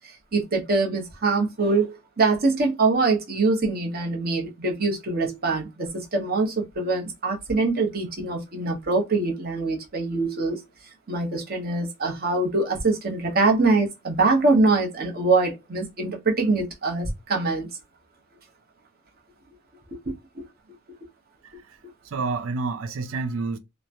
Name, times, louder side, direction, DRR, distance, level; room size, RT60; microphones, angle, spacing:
voice 1, 0.3-10.6 11.1-17.7 20.3-20.5, right 3 dB, 50° right, 0.9 m, -23 dB
voice 2, 21.4-21.8 22.0-23.6, right 4 dB, 85° right, 0.4 m, -29 dB
3.0 x 2.1 x 2.5 m
head